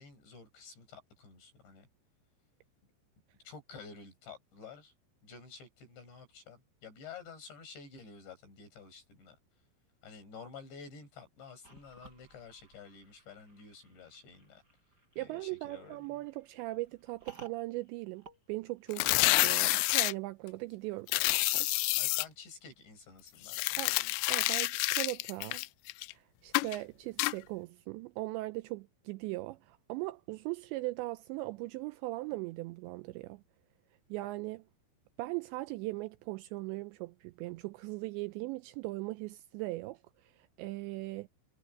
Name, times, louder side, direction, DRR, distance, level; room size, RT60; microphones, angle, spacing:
voice 1, 0.0-1.9 3.4-4.9 5.2-9.4 10.0-14.6 15.2-16.2 22.0-24.1, left 5 dB, 65° left, 9.5 m, -51 dB
sound 1, 11.6-19.3, right 5 dB, 20° right, 6.8 m, -58 dB
voice 2, 15.2-22.0 23.8-24.0 24.3-25.6 26.1-33.4 34.1-34.6 35.2-41.3, right 20 dB, 85° right, 2.6 m, -39 dB
sound 2, 18.9-20.1 21.1-22.2 23.4-26.1 26.5-26.8 27.2-27.3, left 22 dB, 85° left, 2.6 m, -28 dB
omnidirectional pair, 5.5 m